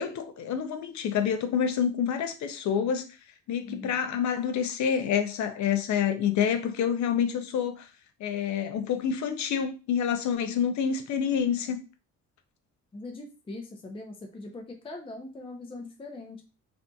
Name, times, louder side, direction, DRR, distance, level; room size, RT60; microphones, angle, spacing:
voice 1, 0.0-3.2 3.5-7.9 8.2-11.8, left 8 dB, 70° left, 0.5 m, -28 dB
voice 2, 3.6-4.1 12.9-16.4, left 2 dB, 20° left, 0.5 m, -41 dB
2.6 x 2.5 x 2.3 m
cardioid pair, 90°, 30 cm